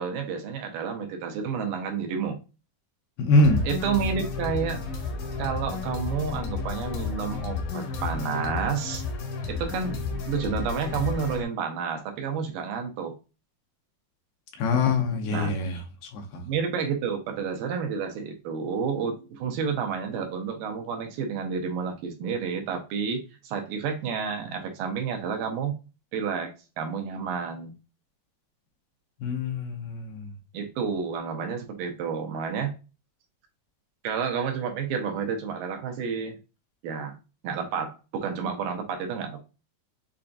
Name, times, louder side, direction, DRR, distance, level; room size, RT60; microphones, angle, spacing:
voice 1, 0.0-2.4 3.7-4.8 5.4-9.0 9.5-10.0 10.3-13.1 15.3-15.5 16.5-25.8 26.1-26.5 26.8-27.7 30.5-32.7 34.0-36.4 36.8-37.2 37.4-39.4, right 6 dB, 75° right, 2.3 m, -30 dB
voice 2, 3.2-3.6 14.6-15.8 16.1-16.4 29.2-30.3, left 2 dB, 85° left, 2.8 m, -24 dB
sound 1, 3.4-11.4, left 4 dB, 70° left, 2.0 m, -32 dB
6.8 x 2.5 x 2.5 m
omnidirectional pair, 4.3 m